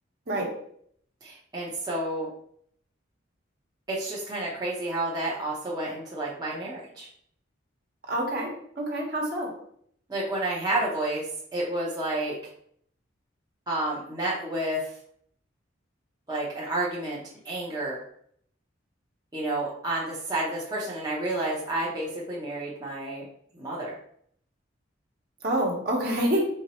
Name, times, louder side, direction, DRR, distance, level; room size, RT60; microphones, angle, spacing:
voice 1, 1.2-2.3 3.9-7.1 10.1-11.3 11.5-12.4 13.7-14.8 16.3-17.2 17.4-18.0 19.3-23.3 23.5-23.9, right 1 dB, 20° right, -6 dB, 0.8 m, -30 dB
voice 2, 8.1-9.5 25.4-26.5, right 1 dB, 50° right, -1 dB, 1.3 m, -27 dB
4.5 x 3.9 x 3.0 m, 0.65 s
head